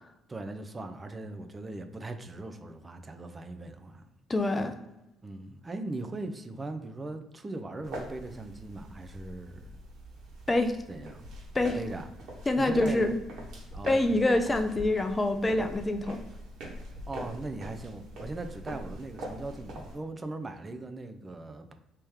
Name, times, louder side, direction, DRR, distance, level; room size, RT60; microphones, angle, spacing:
voice 1, 0.3-4.1 5.2-9.7 10.9-11.3 11.7-12.1 12.6-13.1 13.7-14.2 17.1-21.7, right 2 dB, 30° right, 7 dB, 0.5 m, -39 dB
voice 2, 4.3-4.7 10.5-10.7 11.5-11.8 12.5-13.1 13.8-16.2, left 2 dB, 25° left, 7 dB, 0.5 m, -26 dB
sound 1, 7.8-19.9, right 1 dB, 70° right, 1.3 m, -43 dB
3.2 x 2.9 x 3.5 m, 0.97 s
hypercardioid pair, 55°, 0 cm